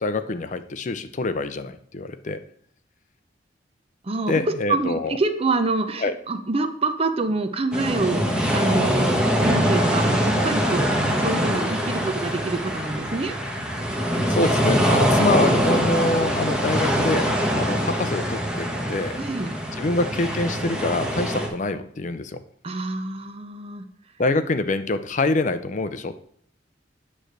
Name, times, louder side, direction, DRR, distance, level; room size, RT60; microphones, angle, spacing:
voice 1, 0.0-2.4 4.3-5.1 6.0-6.1 14.3-19.2 19.8-22.4 24.2-26.2, left 2 dB, 45° left, 10 dB, 0.5 m, -25 dB
voice 2, 4.7-10.9 11.2-13.4 19.2-19.6 22.6-23.9, right 3 dB, 35° right, 8 dB, 0.6 m, -26 dB
sound 1, 7.7-21.5, equal, 5° right, 1.3 m, -23 dB
8.9 x 3.3 x 6.4 m, 0.64 s
head